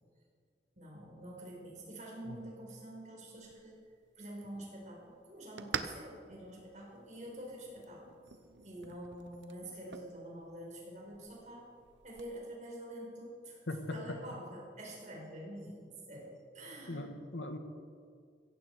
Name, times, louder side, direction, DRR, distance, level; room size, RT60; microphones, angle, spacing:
voice 1, 0.8-3.8 4.2-8.0 8.6-11.6 12.0-13.6 13.9-17.1, right 1 dB, 40° right, -2 dB, 4.6 m, -47 dB
sound 1, 3.4-12.3, right 6 dB, 85° right, 0.8 m, -48 dB
voice 2, 13.7-14.2 16.9-17.6, left 2 dB, 85° left, 6 dB, 1.6 m, -39 dB
16.0 x 15.5 x 4.7 m, 2.2 s
head